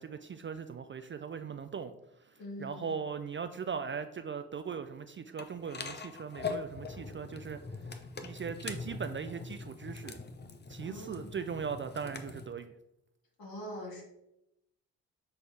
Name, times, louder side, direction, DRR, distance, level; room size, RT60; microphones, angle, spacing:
voice 1, 0.0-1.9 2.2-7.6 8.2-10.2 10.7-12.7, right 6 dB, 30° right, 9 dB, 0.4 m, -39 dB
voice 2, 2.4-3.0 10.8-11.4 13.4-14.0, equal, 55° left, -1 dB, 2.3 m, -43 dB
sound 1, 5.4-12.5, left 4 dB, 25° left, 0.8 m, -42 dB
6.7 x 4.1 x 3.4 m, 0.84 s
hypercardioid pair, 45°, 41 cm